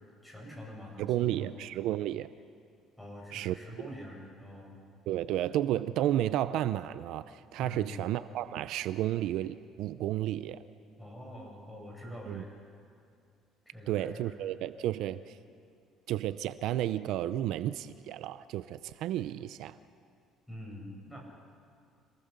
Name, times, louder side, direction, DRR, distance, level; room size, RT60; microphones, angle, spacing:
voice 1, 0.2-1.5 3.0-4.8 7.6-8.0 11.0-12.6 13.7-14.4 20.5-21.2, left 1 dB, 5° left, -1 dB, 6.9 m, -45 dB
voice 2, 1.0-2.3 3.3-3.6 5.1-10.6 12.3-12.4 13.9-15.4 16.1-19.8, right 13 dB, 70° right, 14 dB, 0.6 m, -32 dB
26.0 x 18.5 x 6.8 m, 2.3 s
cardioid pair, 110°, 0 cm